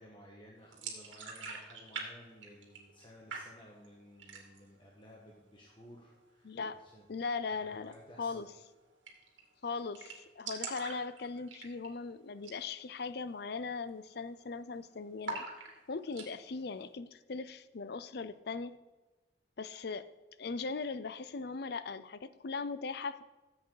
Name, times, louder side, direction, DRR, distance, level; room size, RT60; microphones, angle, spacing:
voice 1, 0.0-7.0 7.5-8.5, equal, 25° left, -3 dB, 1.4 m, -56 dB
sound 1, 0.7-2.1 2.3-3.0 3.3-3.9 4.2-4.7 5.1-5.2 5.5-6.1 7.8-8.0 8.3-8.4 8.6-8.7 9.1-9.4 9.7-9.8 9.9-12.0 12.4-12.6 13.0-13.1 13.6-13.9 14.1-14.8 15.2-16.3, right 4 dB, 70° right, 2.4 m, -43 dB
voice 2, 6.4-6.8 7.1-7.9 8.2-8.5 9.6-15.4 15.9-18.7 19.6-20.1 20.4-23.2, left 4 dB, 55° left, 14 dB, 0.5 m, -39 dB
15.0 x 7.9 x 3.9 m, 1.2 s
head